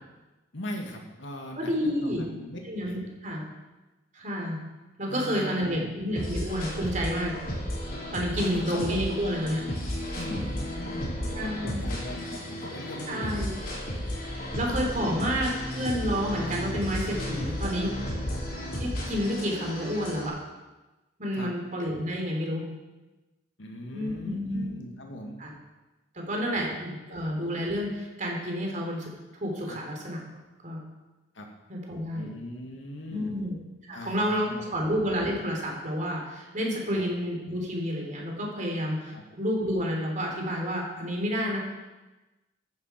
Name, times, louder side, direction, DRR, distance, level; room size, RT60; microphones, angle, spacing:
voice 1, 0.5-2.6 2.9-3.0 5.1-5.9 7.0-7.1 8.3-9.0 10.2-13.4 18.3-18.4 21.3-21.5 23.6-25.4 26.5-26.6 27.1-27.2 29.7-29.8 31.4-31.5 32.1-33.3 33.9-34.6 36.9-37.0 39.1-39.2, left 1 dB, 80° left, 2 dB, 2.1 m, -39 dB
voice 2, 1.6-2.2 2.6-3.4 4.1-4.6 5.0-7.3 8.1-9.6 10.3-10.4 11.3-11.8 13.1-13.5 14.5-17.9 18.7-20.3 21.2-22.6 23.9-24.7 25.4-25.5 26.1-29.1 29.4-30.2 30.6-30.8 31.7-32.3 33.1-33.6 33.9-41.6, equal, 45° right, -1 dB, 3.3 m, -30 dB
sound 1, 6.2-20.3, left 1 dB, 50° left, 4.1 m, -33 dB
14.0 x 11.0 x 4.5 m, 1.1 s
head